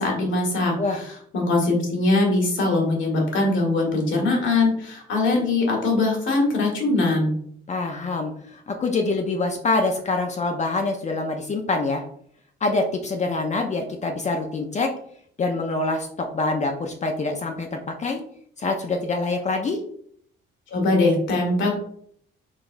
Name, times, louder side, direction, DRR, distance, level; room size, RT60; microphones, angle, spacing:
voice 1, 0.0-7.3 20.7-21.7, left 2 dB, 75° left, -1 dB, 1.5 m, -22 dB
voice 2, 7.7-12.0 12.6-14.9 15.4-18.2 18.6-19.8, left 3 dB, 35° left, 3 dB, 0.5 m, -25 dB
3.9 x 3.4 x 2.5 m, 0.64 s
cardioid pair, 90°, 20 cm